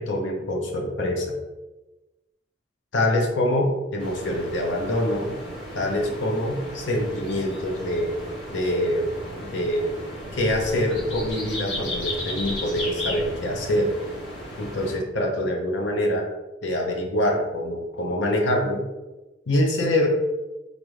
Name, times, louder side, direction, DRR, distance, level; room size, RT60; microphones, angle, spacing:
voice 1, 0.0-1.4 2.9-5.3 5.7-8.1 8.5-9.1 9.5-9.9 10.3-13.9 14.6-16.2 16.6-18.8 19.5-20.1, left 1 dB, 75° left, 1 dB, 0.7 m, -25 dB
sound 1, 4.0-15.0, left 1 dB, 90° left, 1.2 m, -35 dB
4.8 x 2.6 x 3.1 m, 1.1 s
head